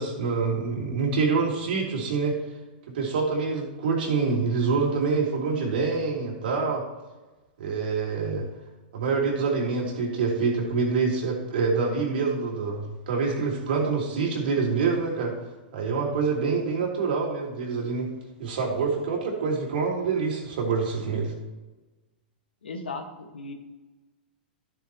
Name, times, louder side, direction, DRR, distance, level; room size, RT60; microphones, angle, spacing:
voice 1, 0.0-2.4 2.9-6.8 7.6-8.4 8.9-15.3 15.7-18.1 18.4-21.3, right 4 dB, 70° right, -2 dB, 3.3 m, -26 dB
voice 2, 22.6-23.5, left 3 dB, 90° left, 4 dB, 1.7 m, -36 dB
13.0 x 8.0 x 3.1 m, 1.1 s
hypercardioid pair, 115°, 5 cm